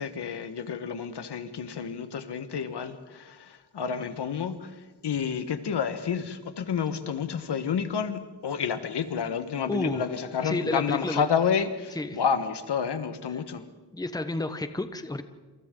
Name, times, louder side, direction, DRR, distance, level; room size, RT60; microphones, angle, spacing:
voice 1, 0.0-4.7 5.0-13.6, left 7 dB, 80° left, 10 dB, 1.5 m, -30 dB
voice 2, 9.7-10.0 10.4-11.2 11.9-12.2 13.3-13.4 13.9-15.2, left 2 dB, 10° left, 9 dB, 1.1 m, -31 dB
27.5 x 27.5 x 3.9 m, 1.3 s
wide cardioid pair, 140°, 40 cm